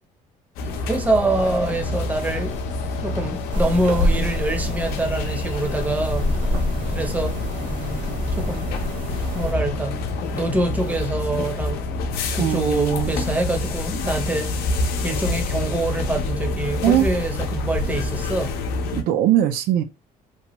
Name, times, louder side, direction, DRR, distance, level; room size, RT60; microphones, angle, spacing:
sound 1, 0.6-19.0, left 2 dB, 85° left, 0.6 m, -27 dB
voice 1, 0.6-2.6 3.0-6.3 6.9-7.4 8.3-8.7 9.3-10.0 10.3-12.1 12.3-18.5, right 2 dB, 10° right, 0.6 m, -25 dB
Thunder / Rain, 1.3-11.5, left 3 dB, 50° left, 0.8 m, -40 dB
sound 2, 3.5-9.5, equal, 60° right, 0.9 m, -29 dB
voice 2, 12.3-13.1 16.8-17.1 18.9-19.8, right 12 dB, 80° right, 0.4 m, -20 dB
2.9 x 2.2 x 2.9 m
cardioid pair, 130°, 15 cm